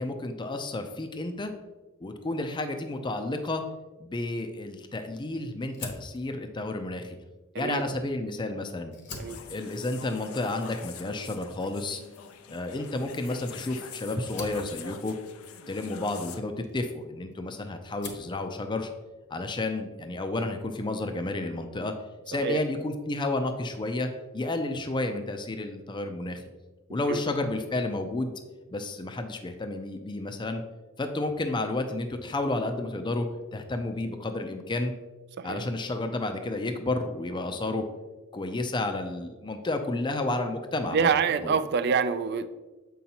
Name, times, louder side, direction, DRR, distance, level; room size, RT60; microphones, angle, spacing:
voice 1, 0.0-1.5 2.0-3.6 4.0-7.2 7.6-8.9 9.5-12.0 12.5-15.2 15.7-18.9 19.3-21.9 22.3-26.4 26.9-28.3 28.7-30.6 31.0-34.9 35.4-37.8 38.3-41.1 41.4-41.6, left 2 dB, 20° left, 6 dB, 0.5 m, -31 dB
Fire, 5.7-8.3 8.8-17.4 17.8-18.4, left 3 dB, 55° left, 1.0 m, -46 dB
sound 1, 9.1-16.4, left 7 dB, 90° left, 0.5 m, -45 dB
voice 2, 40.9-42.5, right 6 dB, 50° right, 12 dB, 0.4 m, -26 dB
7.4 x 5.4 x 2.9 m, 1.2 s
head